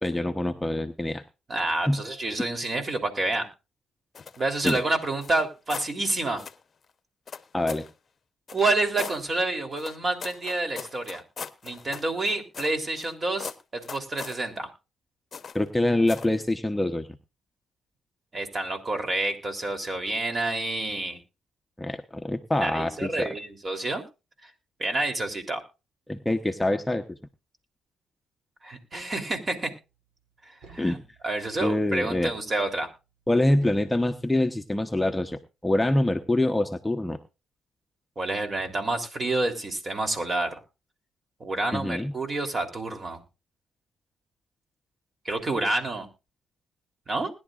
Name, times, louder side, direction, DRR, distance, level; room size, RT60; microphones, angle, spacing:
voice 1, 0.0-1.2 1.9-2.0 4.6-4.8 7.5-7.8 15.5-17.1 21.8-23.3 26.1-27.0 30.8-31.0 31.6-32.3 33.3-37.2 41.7-42.1, left 1 dB, 10° left, 5 dB, 1.0 m, -25 dB
voice 2, 1.5-3.5 4.4-6.4 8.5-11.2 11.6-14.7 18.3-21.2 22.6-24.0 24.4-24.5 24.8-25.6 28.6-29.7 30.5-31.0 31.2-32.9 38.2-40.6 41.4-43.2 45.2-46.1 47.1-47.3, right 2 dB, 35° right, 4 dB, 3.5 m, -28 dB
sound 1, 4.1-4.9 5.2-5.9 6.4-6.6 7.3-7.9 8.5-9.2 9.8-13.1 13.4-14.4 15.3-15.7 16.1-16.4, left 6 dB, 40° left, 0.9 m, -39 dB
sound 2, 28.9-29.6 30.6-31.5 32.1-32.9 33.6-34.6, right 4 dB, 75° right, 7.4 m, -53 dB
20.5 x 11.0 x 2.5 m, 0.29 s
cardioid pair, 90°, 0 cm